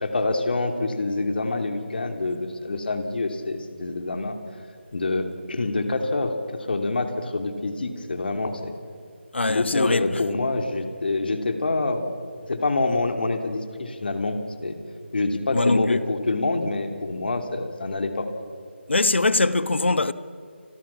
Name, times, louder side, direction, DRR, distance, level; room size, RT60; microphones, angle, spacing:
voice 1, 0.0-4.4 4.9-8.7 9.5-12.1 12.5-14.7 15.1-18.3, left 2 dB, 55° left, 3.0 m, -26 dB
voice 2, 9.3-10.2 15.5-16.1 18.9-20.1, left 2 dB, 70° left, 1.2 m, -22 dB
29.5 x 22.0 x 6.1 m
figure-of-eight pair, 160°, 6 cm